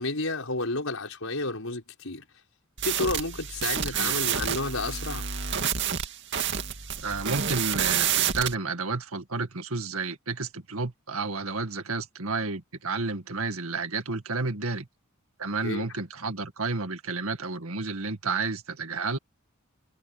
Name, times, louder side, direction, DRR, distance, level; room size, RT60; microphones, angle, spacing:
voice 1, 0.0-2.2 2.8-5.3 15.6-15.9, left 2 dB, 65° left, 6.3 m, -31 dB
sound 1, 2.8-8.5, right 8 dB, 55° right, 2.3 m, -28 dB
voice 2, 3.9-4.2 6.5-6.6 7.0-14.9 15.4-19.2, right 3 dB, 75° right, 2.1 m, -31 dB
head